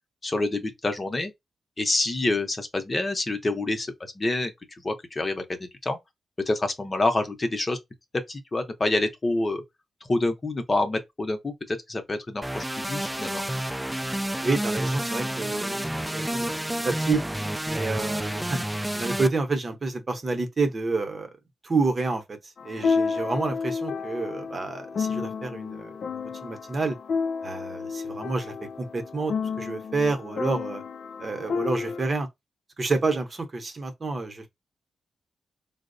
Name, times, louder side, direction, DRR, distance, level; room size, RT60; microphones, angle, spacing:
voice 1, 0.2-1.3 1.8-3.9 4.2-4.5 4.8-6.0 6.5-7.8 8.3-9.6 10.1-13.4, left 2 dB, 30° left, 0.7 m, -27 dB
sound 1, 12.4-19.3, right 1 dB, 5° right, 0.3 m, -29 dB
voice 2, 14.4-16.5 16.8-17.2 17.6-18.6 19.0-21.3 21.6-27.0 27.4-30.8 31.2-32.3 32.8-34.5, right 3 dB, 40° right, 0.8 m, -29 dB
sound 2, 22.6-32.1, left 5 dB, 65° left, 0.4 m, -31 dB
4.3 x 2.0 x 2.5 m
cardioid pair, 95°, 0 cm